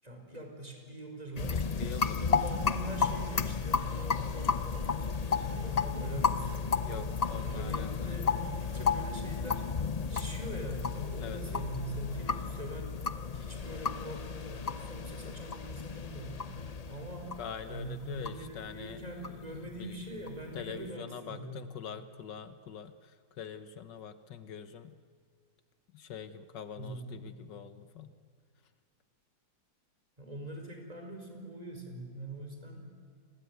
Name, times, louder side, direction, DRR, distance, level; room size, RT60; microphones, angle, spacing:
voice 1, 0.0-7.1 7.4-9.7 10.1-13.0 13.3-16.5 16.9-17.4 17.7-21.6 26.8-27.3 30.2-32.9, right 1 dB, 20° right, 3 dB, 4.9 m, -43 dB
sound 1, 1.4-20.6, left 5 dB, 45° left, 0.5 m, -33 dB
voice 2, 1.8-2.7 6.8-8.3 11.2-11.6 17.4-20.0 20.5-24.9 25.9-28.1, left 7 dB, 70° left, 12 dB, 1.6 m, -45 dB
28.5 x 21.5 x 9.5 m, 2.1 s
omnidirectional pair, 2.0 m